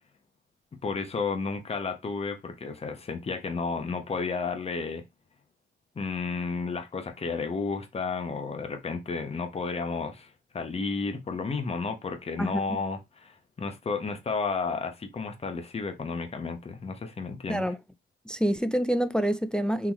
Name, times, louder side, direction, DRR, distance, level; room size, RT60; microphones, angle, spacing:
voice 1, 0.8-5.0 5.9-17.7, left 4 dB, 30° left, 1.0 m, -32 dB
voice 2, 12.4-12.8 17.5-17.8 18.3-19.9, equal, 5° left, 0.3 m, -27 dB
3.9 x 2.9 x 3.0 m
cardioid pair, 90°, 20 cm